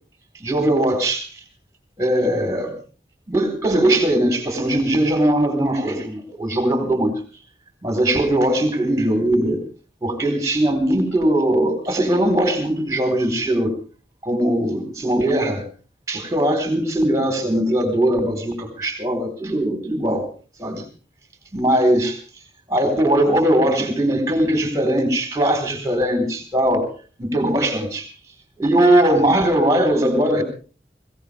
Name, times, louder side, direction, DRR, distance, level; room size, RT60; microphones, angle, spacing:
voice 1, 0.3-1.3 2.0-2.8 3.3-7.1 7.8-9.6 10.0-13.7 14.2-15.6 16.1-20.3 20.6-20.8 21.5-22.2 22.7-26.9 27.2-28.1 28.6-30.4, right 1 dB, 20° right, 5 dB, 4.0 m, -20 dB
21.5 x 18.0 x 3.5 m, 0.37 s
head